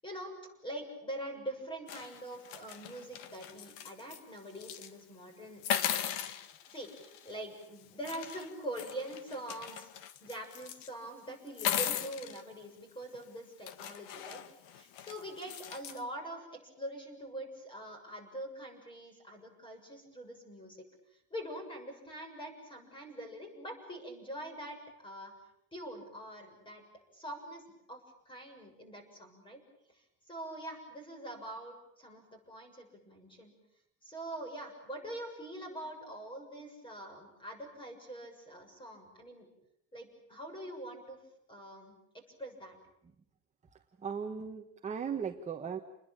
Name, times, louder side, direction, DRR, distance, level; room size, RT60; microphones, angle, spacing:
voice 1, 0.0-6.0 6.7-20.9 21.3-25.3 25.7-26.8 27.1-29.6 29.9-33.5 34.0-39.5 39.9-41.2 41.5-42.8, right 1 dB, 10° left, 6 dB, 6.9 m, -44 dB
sound 1, 1.9-4.2 4.5-4.9 5.6-7.3 8.0-10.9 11.5-12.4 13.1-13.2 13.7-16.0, left 10 dB, 70° left, 2.0 m, -38 dB
voice 2, 43.7-45.8, right 7 dB, 15° right, 4 dB, 1.3 m, -38 dB
29.5 x 21.0 x 8.8 m, 0.78 s
cardioid pair, 165°, 43 cm